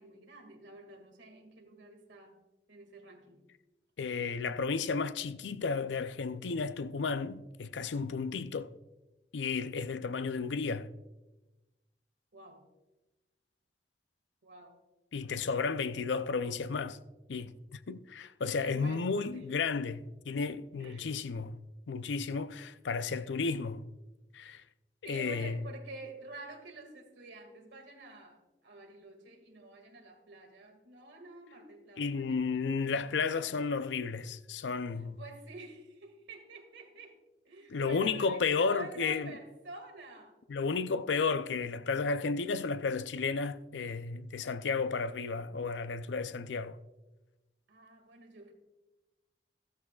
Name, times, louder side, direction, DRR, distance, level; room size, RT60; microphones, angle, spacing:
voice 1, 0.0-2.4 2.7-3.4 12.3-12.6 14.4-14.8 18.6-19.0 19.3-19.5 20.8-21.1 25.0-32.4 32.7-32.9 35.2-37.2 37.4-40.4 47.7-48.5, right 2 dB, 85° right, 2.1 m, -49 dB
voice 2, 4.0-8.7 9.3-10.9 15.1-17.0 17.3-21.6 21.9-23.8 24.3-24.6 25.0-25.6 32.0-35.2 37.7-39.4 40.5-46.8, left 4 dB, 90° left, 0.5 m, -33 dB
13.5 x 13.0 x 2.4 m
head